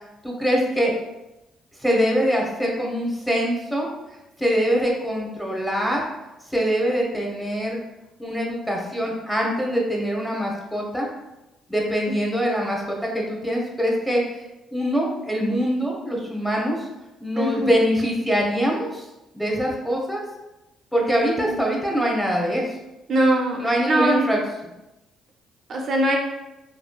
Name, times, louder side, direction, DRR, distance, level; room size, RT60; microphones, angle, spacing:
voice 1, 0.2-0.9 1.8-3.9 4.4-6.0 6.5-7.8 8.2-11.1 11.7-14.4 14.7-16.8 17.2-19.1 19.3-20.2 20.9-22.6 23.6-24.4, equal, 5° left, -2 dB, 0.7 m, -23 dB
voice 2, 17.4-17.8 21.4-21.6 23.1-24.3 25.7-26.2, right 1 dB, 55° right, 1 dB, 0.4 m, -22 dB
3.0 x 2.3 x 2.2 m, 0.97 s
supercardioid pair, 75°, 0 cm